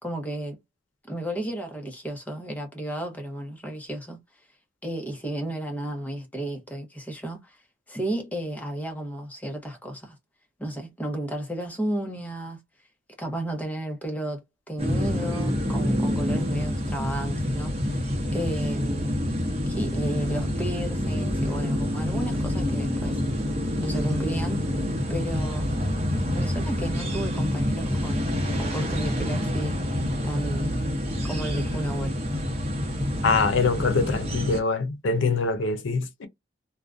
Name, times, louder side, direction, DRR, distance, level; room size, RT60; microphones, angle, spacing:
voice 1, 0.0-0.6 1.1-4.2 4.8-7.6 7.9-10.2 10.6-12.6 13.2-19.2 19.7-23.2 23.8-24.7 25.1-25.7 26.3-29.8 30.2-30.7 31.2-32.2, right 1 dB, 10° left, 0.7 m, -33 dB
sound 1, 14.8-34.6, left 1 dB, 35° right, 0.7 m, -27 dB
voice 2, 33.2-36.3, left 4 dB, 85° left, 0.6 m, -24 dB
2.4 x 2.2 x 2.4 m
head